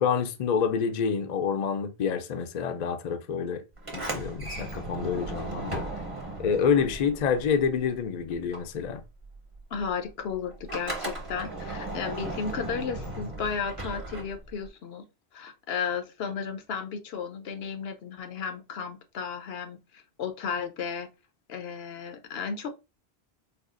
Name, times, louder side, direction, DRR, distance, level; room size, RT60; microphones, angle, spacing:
voice 1, 0.0-3.6 3.9-5.9 6.4-9.0, left 6 dB, 55° left, 0.5 m, -27 dB
Sliding door, 3.8-8.0 8.3-14.7, right 2 dB, 35° right, 0.8 m, -37 dB
voice 2, 9.7-15.0 15.3-21.1 21.5-22.7, left 6 dB, 75° left, 0.8 m, -34 dB
4.2 x 2.3 x 2.4 m
omnidirectional pair, 1.1 m